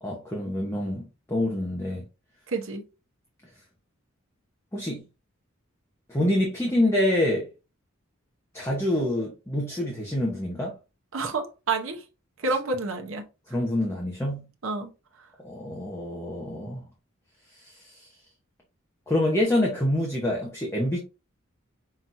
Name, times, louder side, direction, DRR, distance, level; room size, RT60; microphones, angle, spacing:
voice 1, 0.0-2.0 4.7-5.0 6.1-7.5 8.5-10.7 13.5-14.5 15.4-16.9 17.5-18.1 19.1-21.0, left 1 dB, 10° left, 0.9 m, -26 dB
voice 2, 2.5-2.8 11.1-12.0 12.4-13.2 14.6-14.9, right 3 dB, 70° right, 0.9 m, -29 dB
5.8 x 3.0 x 2.6 m
head